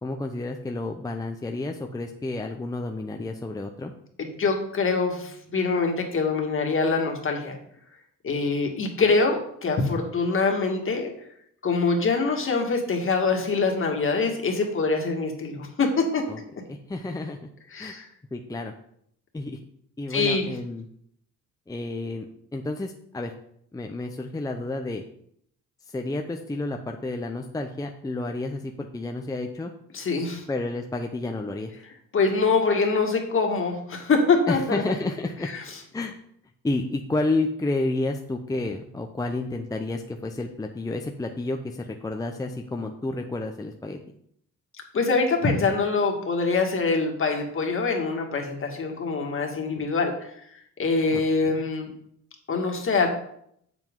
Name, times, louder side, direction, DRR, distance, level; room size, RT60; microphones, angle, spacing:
voice 1, 0.0-3.9 16.3-16.4 16.7-17.4 17.8-17.9 18.3-18.7 19.3-19.6 20.0-20.9 21.7-22.3 22.5-23.3 23.7-25.0 25.8-29.7 30.5-31.7 34.5-35.5 35.9-36.2 36.6-44.0 51.1-51.6, left 2 dB, 10° left, 3 dB, 0.6 m, -30 dB
voice 2, 4.2-7.6 8.2-11.1 11.6-16.2 17.7-18.1 20.1-20.5 29.9-30.4 32.1-34.8 35.5-35.6 44.9-50.3 50.8-51.9 52.5-53.1, left 4 dB, 45° left, 2 dB, 1.9 m, -24 dB
7.6 x 7.3 x 3.8 m, 0.70 s
cardioid pair, 90°, 30 cm